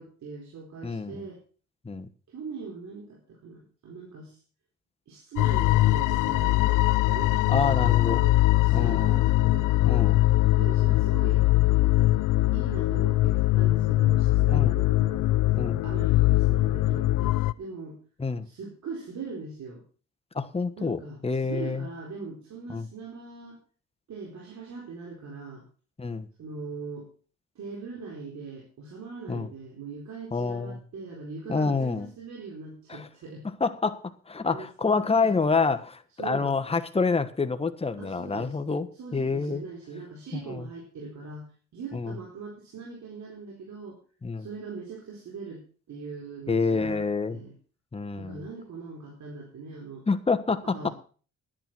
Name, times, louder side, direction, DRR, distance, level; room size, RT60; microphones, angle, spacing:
voice 1, 0.0-1.4 2.3-4.4 5.1-6.8 7.1-9.7 10.5-11.4 12.5-15.3 15.8-18.0 18.4-19.8 20.8-23.6 24.1-25.7 26.4-27.1 27.6-33.4 34.5-35.3 36.2-36.6 38.0-38.6 38.9-41.5 41.7-44.0 44.4-47.5 48.2-50.1 50.6-50.9, right 4 dB, 65° right, -1 dB, 4.2 m, -41 dB
voice 2, 0.8-1.2 1.8-2.1 7.5-8.3 8.7-9.3 9.8-10.2 14.5-14.7 15.5-15.8 18.2-18.5 20.3-21.9 22.7-22.9 26.0-26.3 29.3-29.5 30.3-30.8 31.5-32.1 32.9-33.1 33.4-39.6 40.3-40.7 41.9-42.2 44.2-44.5 46.5-47.4 47.9-48.4 50.1-50.9, left 4 dB, 20° left, 8 dB, 1.3 m, -28 dB
sound 1, 5.4-17.5, left 17 dB, 90° left, 0.6 m, -22 dB
11.0 x 10.5 x 6.1 m, 0.40 s
cardioid pair, 90°, 30 cm